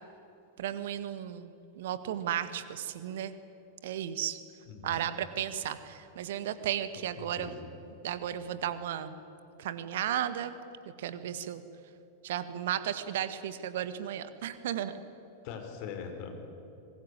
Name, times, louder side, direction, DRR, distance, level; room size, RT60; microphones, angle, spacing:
voice 1, 0.6-3.3 3.8-4.4 4.8-7.5 8.0-9.1 9.6-10.6 11.0-11.6 12.2-14.9, right 10 dB, 55° right, 12 dB, 1.6 m, -34 dB
voice 2, 4.7-5.0 7.2-7.7 15.4-16.3, left 7 dB, 45° left, 5 dB, 4.5 m, -42 dB
24.0 x 21.0 x 9.7 m, 2.8 s
figure-of-eight pair, 90°, 0 cm